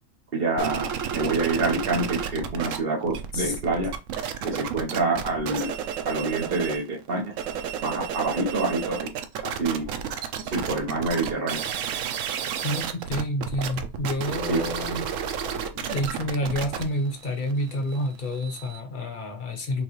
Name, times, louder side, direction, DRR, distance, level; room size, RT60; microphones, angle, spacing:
voice 1, 0.3-3.9 4.4-5.7 6.0-7.3 7.8-9.1 9.6-9.8 10.4-11.6 14.5-14.7, right 3 dB, 50° right, 1.1 m, -27 dB
sound 1, 0.6-2.8 3.0-6.9 7.2-18.8, right 8 dB, 85° right, 1.0 m, -31 dB
voice 2, 12.6-15.1 15.7-19.8, left 1 dB, 40° left, 1.1 m, -29 dB
6.0 x 2.3 x 3.1 m
omnidirectional pair, 1.3 m